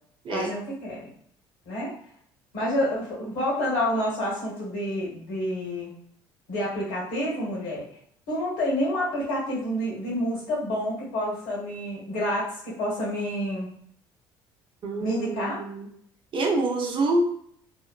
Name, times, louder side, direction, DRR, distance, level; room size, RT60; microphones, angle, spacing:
voice 1, 0.3-1.1 1.6-1.9 2.5-5.9 6.5-7.9 8.3-13.7 15.0-15.6, equal, 75° left, -5 dB, 1.3 m, -28 dB
voice 2, 14.8-15.9 16.3-17.4, right 2 dB, 45° right, 1 dB, 0.7 m, -26 dB
3.0 x 2.0 x 2.3 m, 0.64 s
hypercardioid pair, 60°, 12 cm